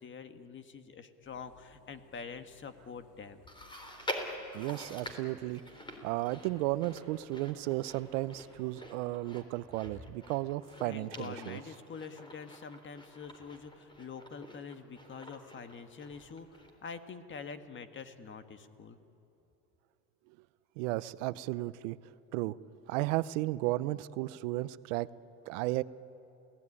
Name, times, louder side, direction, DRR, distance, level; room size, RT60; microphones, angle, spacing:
voice 1, 0.0-3.4 10.8-19.0, left 5 dB, 30° left, 9 dB, 1.6 m, -46 dB
Engine, 1.2-8.7, left 6 dB, 55° left, 3.5 m, -63 dB
Chewing mastication, 3.5-17.0 17.3-17.4 18.2-18.3, equal, 15° left, 3.8 m, -46 dB
voice 2, 4.5-5.6 6.0-11.6 20.8-22.6 22.9-25.1 25.5-25.8, right 18 dB, 80° right, 17 dB, 0.8 m, -34 dB
28.0 x 17.5 x 9.9 m, 2.7 s
supercardioid pair, 110°, 37 cm